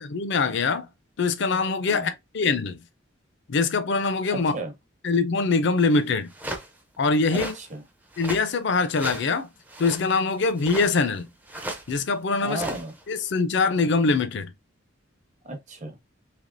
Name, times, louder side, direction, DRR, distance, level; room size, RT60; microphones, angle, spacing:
voice 1, 0.0-0.9 1.2-2.8 3.5-4.5 5.0-6.3 7.0-7.5 8.2-9.5 9.8-11.3 11.9-12.6 13.1-14.5, left 4 dB, 60° left, 0.5 m, -23 dB
voice 2, 4.3-4.7 7.3-7.8 12.4-12.9 15.4-16.0, right 2 dB, 35° right, 0.8 m, -34 dB
sound 1, 5.9-6.0 6.3-6.7 7.2-7.6 8.1-8.5 8.9-9.3 9.7-10.1 10.6-11.2 11.5-12.0 12.5-13.1, right 1 dB, 10° right, 0.5 m, -36 dB
3.4 x 2.8 x 2.5 m
head